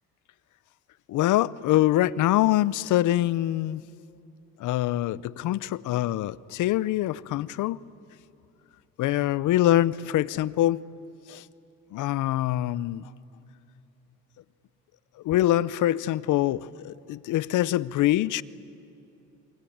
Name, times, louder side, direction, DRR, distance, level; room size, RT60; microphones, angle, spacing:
voice 1, 1.1-3.8 4.6-7.8 9.0-10.9 11.3-11.4 11.9-13.1 15.2-18.4, left 14 dB, 80° left, 0.7 m, -24 dB
27.5 x 23.5 x 8.7 m
cardioid pair, 90°, 30 cm